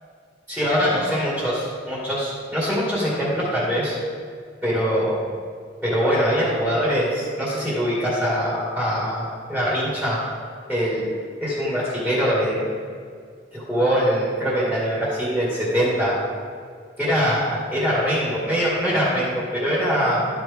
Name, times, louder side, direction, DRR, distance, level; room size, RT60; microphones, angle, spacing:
voice 1, 0.5-4.0 4.6-5.2 5.8-10.2 10.7-11.1 11.4-12.6 13.5-16.2 17.0-20.3, equal, ahead, -8 dB, 2.2 m, -23 dB
12.5 x 6.0 x 3.5 m, 2.1 s
head